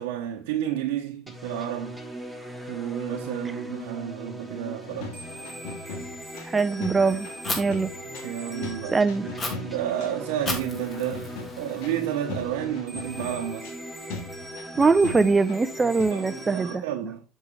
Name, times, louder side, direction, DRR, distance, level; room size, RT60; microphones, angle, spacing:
voice 1, 0.0-2.0 2.7-5.2 8.2-13.7 16.1-17.2, right 11 dB, 85° right, 1.0 m, -31 dB
sound 1, 1.3-16.8, right 1 dB, 5° left, 1.6 m, -39 dB
sound 2, 4.8-16.0, left 4 dB, 80° left, 1.9 m, -40 dB
voice 2, 6.4-7.3 7.6-7.9 8.9-9.3 14.7-16.8, right 4 dB, 20° right, 0.7 m, -22 dB
Fire, 7.4-7.6 9.4-9.5 10.5-12.4, left 2 dB, 30° left, 2.5 m, -34 dB
7.0 x 6.6 x 3.2 m
supercardioid pair, 105°, 0 cm